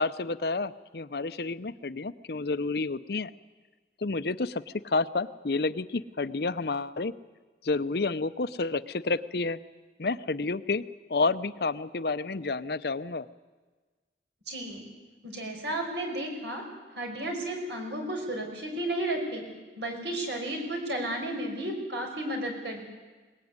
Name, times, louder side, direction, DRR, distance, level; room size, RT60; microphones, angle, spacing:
voice 1, 0.0-3.3 4.0-7.1 7.6-9.6 10.0-10.8 11.1-13.3, left 3 dB, 60° left, 14 dB, 0.7 m, -30 dB
voice 2, 14.5-14.8 15.2-16.6 17.0-19.4 19.8-22.9, right 1 dB, 75° right, 3 dB, 5.5 m, -33 dB
22.0 x 19.5 x 9.6 m, 1.3 s
head